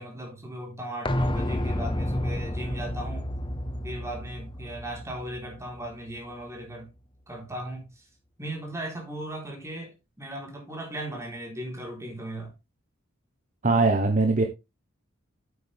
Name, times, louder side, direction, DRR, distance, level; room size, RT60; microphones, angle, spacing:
voice 1, 0.0-3.3 3.8-6.9 7.3-8.0 8.4-12.5, right 1 dB, 15° right, 3.9 m, -37 dB
sound 1, 1.0-6.7 7.0-7.1, left 1 dB, 25° left, 0.9 m, -31 dB
voice 2, 13.6-14.4, right 3 dB, 40° right, 1.2 m, -21 dB
8.5 x 8.1 x 3.5 m
head